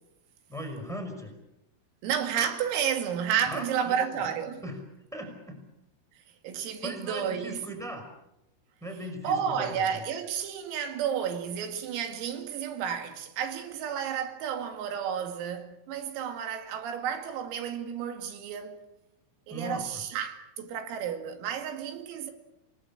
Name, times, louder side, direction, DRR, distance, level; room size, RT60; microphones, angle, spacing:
voice 1, 0.5-1.3 3.5-4.0 4.6-4.8 5.1-5.6 6.8-8.0 8.8-10.0 19.5-19.8, equal, ahead, 4.6 m, -38 dB
voice 2, 2.0-4.6 6.4-7.6 9.2-18.8 19.5-22.3, right 8 dB, 80° right, 4.9 m, -31 dB
28.0 x 19.5 x 8.7 m
omnidirectional pair, 6.0 m